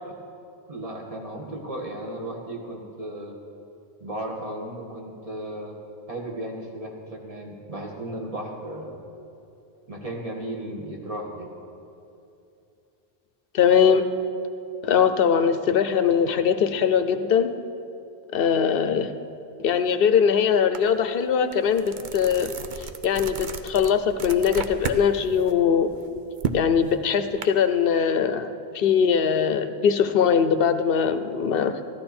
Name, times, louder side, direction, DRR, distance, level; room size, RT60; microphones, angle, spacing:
voice 1, 0.7-3.3 4.0-5.7 6.1-9.0 9.9-11.5, right 1 dB, 35° right, -1 dB, 1.7 m, -35 dB
voice 2, 13.5-14.0 14.8-17.6 18.3-19.1 19.6-22.5 23.0-25.9 26.5-31.8, left 7 dB, 65° left, 10 dB, 0.8 m, -21 dB
sound 1, 20.7-20.9 21.3-25.0 25.4-27.4, right 6 dB, 55° right, 0.7 m, -33 dB
15.0 x 12.5 x 4.3 m, 2.7 s
omnidirectional pair, 1.0 m